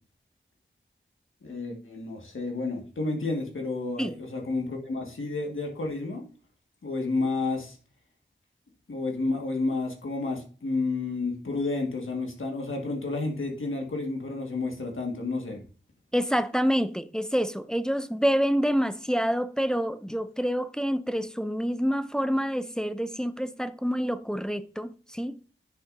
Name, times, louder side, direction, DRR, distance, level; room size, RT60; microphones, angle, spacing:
voice 1, 1.4-6.2 6.8-7.8 8.9-15.6, left 3 dB, 85° left, 1.7 m, -31 dB
voice 2, 16.1-25.4, equal, 5° left, 0.4 m, -27 dB
9.9 x 6.2 x 2.6 m
wide cardioid pair, 70°, 20 cm